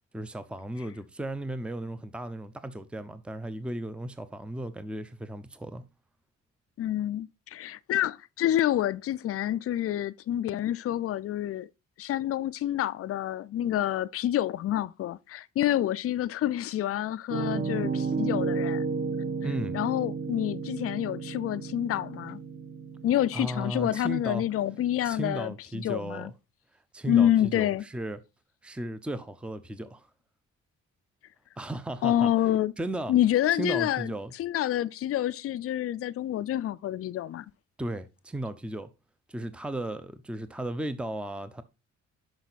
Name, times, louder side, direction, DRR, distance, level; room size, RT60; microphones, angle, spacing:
voice 1, 0.1-5.8 19.4-19.8 23.3-24.4 25.0-26.3 26.9-28.2 28.6-30.1 31.6-32.3 32.8-33.1 33.6-34.3 37.8-38.9 39.3-41.6, right 1 dB, 5° right, 0.7 m, -35 dB
voice 2, 6.8-11.7 12.0-18.8 19.7-22.4 23.0-26.3 27.1-27.8 32.0-32.7 33.1-34.1 34.4-37.5, left 12 dB, 50° left, 0.5 m, -28 dB
Piano, 17.3-25.2, right 5 dB, 35° right, 1.3 m, -33 dB
6.3 x 5.5 x 4.1 m
cardioid pair, 90°, 30 cm